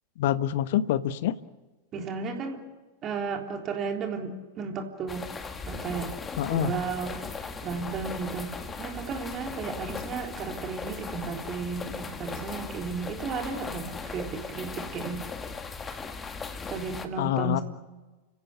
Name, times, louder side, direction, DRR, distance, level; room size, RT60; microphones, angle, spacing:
voice 1, 0.2-1.3 6.4-6.7 17.2-17.6, left 12 dB, 55° left, 14 dB, 1.1 m, -26 dB
voice 2, 1.9-2.6 3.0-5.3 5.7-6.1 6.5-7.2 7.6-8.5 8.8-15.2 16.7-17.6, right 5 dB, 30° right, 4 dB, 3.6 m, -34 dB
sound 1, 5.1-17.1, left 5 dB, 15° left, 2.1 m, -38 dB
30.0 x 17.0 x 8.5 m, 1.2 s
figure-of-eight pair, 90°, 0 cm